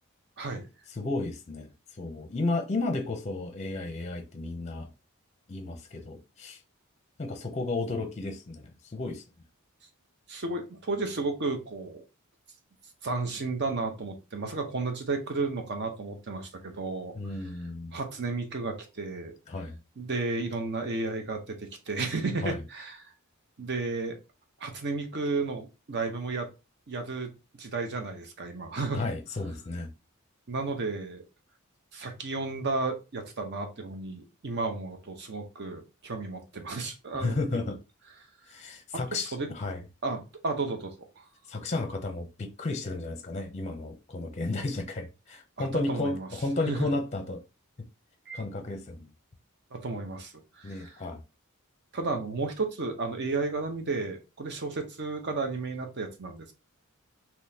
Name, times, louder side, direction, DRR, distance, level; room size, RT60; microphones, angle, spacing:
voice 1, 0.9-1.7 2.0-4.9 5.5-6.6 7.2-9.2 17.1-18.0 19.5-19.8 22.4-22.6 28.9-29.9 37.1-37.8 38.5-39.8 41.5-47.4 48.3-49.1 50.6-51.2, left 2 dB, 30° left, 0.6 m, -33 dB
voice 2, 10.3-12.0 13.0-17.3 17.9-19.4 20.0-23.1 23.6-24.2 24.6-26.5 26.9-27.3 27.6-29.0 30.5-31.2 31.9-37.4 37.6-37.7 39.1-39.5 40.0-41.3 45.6-46.3 46.7-46.9 48.3-48.4 49.7-51.0 51.9-56.5, right 3 dB, 50° right, 0.8 m, -33 dB
3.6 x 2.9 x 2.8 m
head